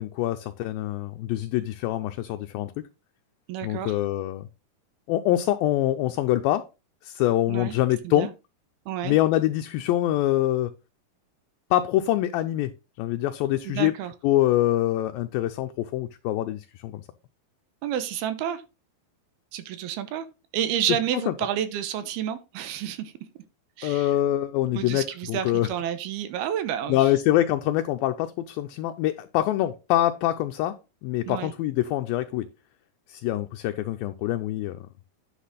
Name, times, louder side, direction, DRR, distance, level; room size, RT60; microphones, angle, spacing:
voice 1, 0.0-2.8 3.6-4.5 5.1-6.7 7.0-8.3 9.0-10.7 11.7-12.7 13.0-13.9 14.2-17.0 21.3-21.4 23.8-25.7 26.9-30.8 31.0-32.5 33.1-34.8, left 14 dB, 80° left, 2.2 m, -25 dB
voice 2, 3.5-4.0 7.5-7.8 8.0-8.3 8.9-9.2 13.7-14.1 17.8-18.6 19.5-20.3 20.5-23.1 23.8-24.1 24.8-27.0 31.3-31.5, right 10 dB, 80° right, 2.9 m, -30 dB
10.0 x 5.9 x 4.1 m
omnidirectional pair, 4.6 m